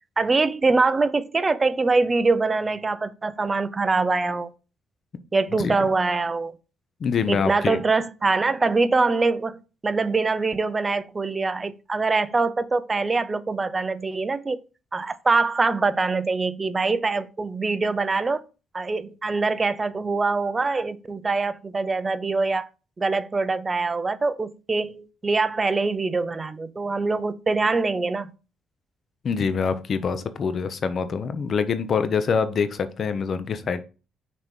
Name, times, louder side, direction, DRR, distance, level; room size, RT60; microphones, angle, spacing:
voice 1, 0.2-4.5 5.3-6.5 7.3-14.6 14.9-18.4 18.7-22.7 23.0-28.3, right 3 dB, 30° right, 0.5 m, -24 dB
voice 2, 7.0-7.8 29.2-33.8, left 6 dB, 50° left, 0.7 m, -25 dB
6.1 x 2.9 x 5.2 m
cardioid pair, 90°, 0 cm